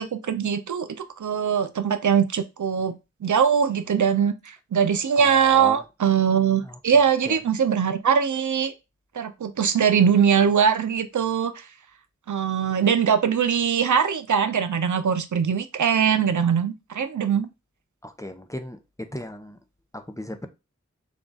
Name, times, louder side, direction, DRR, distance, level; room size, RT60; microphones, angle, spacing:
voice 1, 0.0-8.7 9.1-11.7 12.3-17.5, right 7 dB, 85° right, 0.5 m, -22 dB
voice 2, 5.2-5.8 6.6-7.4 18.0-19.6 19.9-20.5, left 1 dB, 10° left, 0.5 m, -37 dB
3.5 x 2.3 x 3.9 m
wide cardioid pair, 50°, 29 cm